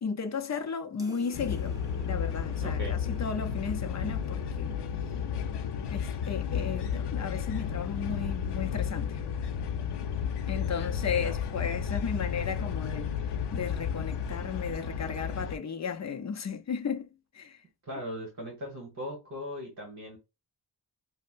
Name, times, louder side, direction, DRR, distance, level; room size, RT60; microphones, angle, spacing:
voice 1, 0.0-1.8 2.0-4.7 5.9-9.2 10.5-13.1 13.5-17.1 17.3-17.6, left 6 dB, 45° left, 0.5 m, -34 dB
sound 1, 1.0-5.9, left 1 dB, 10° right, 0.6 m, -52 dB
sound 2, 1.3-15.6, left 7 dB, 85° left, 0.6 m, -32 dB
voice 2, 2.6-3.0 11.1-11.4 17.8-20.2, equal, 45° right, 1.3 m, -39 dB
5.3 x 2.1 x 2.5 m
wide cardioid pair, 140°, 40 cm